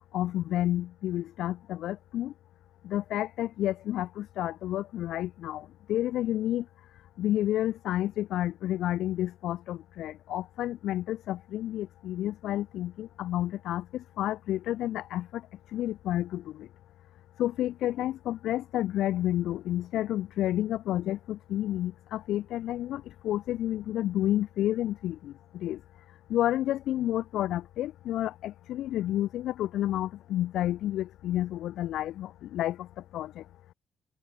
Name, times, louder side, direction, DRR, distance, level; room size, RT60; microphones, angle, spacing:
voice 1, 0.1-2.3 2.8-6.6 7.2-15.4 15.7-16.7 17.4-25.8 26.3-32.9 33.1-33.4, left 13 dB, 80° left, 4.0 m, -30 dB
cardioid pair, 90°, 0 cm